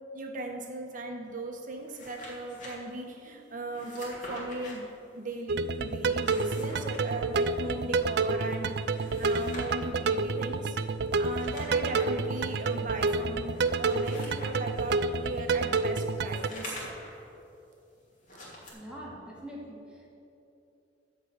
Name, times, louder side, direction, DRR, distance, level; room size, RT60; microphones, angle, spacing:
voice 1, 0.1-4.9 5.1-10.8 11.2-16.9, right 2 dB, 45° right, 2 dB, 1.2 m, -38 dB
sound 1, 1.7-2.7 3.7-4.7 6.1-7.0 8.8-9.9 11.1-12.1 12.7-12.8 13.5-14.9 15.7-17.2 18.2-18.7, left 1 dB, 45° left, 2.6 m, -45 dB
sound 2, 5.5-16.5, right 3 dB, 65° right, 0.4 m, -29 dB
voice 2, 18.7-20.2, equal, 5° right, -6 dB, 2.3 m, -44 dB
14.0 x 4.7 x 8.0 m, 2.8 s
head